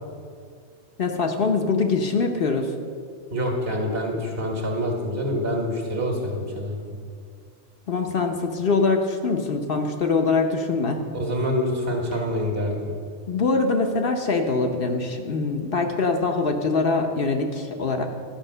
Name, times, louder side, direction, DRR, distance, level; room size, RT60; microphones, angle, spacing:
voice 1, 1.0-2.7 7.9-11.0 13.3-18.1, left 4 dB, 55° left, 3 dB, 1.0 m, -23 dB
voice 2, 3.3-6.8 11.1-12.8, equal, 60° right, 1 dB, 1.9 m, -26 dB
11.5 x 5.3 x 6.6 m, 2.1 s
omnidirectional pair, 1.2 m